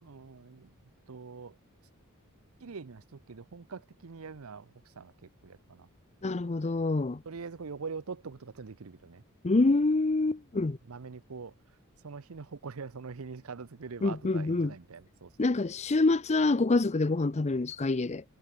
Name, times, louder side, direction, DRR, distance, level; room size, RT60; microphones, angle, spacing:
voice 1, 0.0-1.6 2.6-5.9 7.2-9.2 9.5-9.6 10.5-11.5 12.0-15.3, right 5 dB, 70° right, 0.7 m, -44 dB
voice 2, 6.2-7.2 9.4-10.8 14.0-14.7 15.4-18.2, left 3 dB, 30° left, 0.6 m, -26 dB
head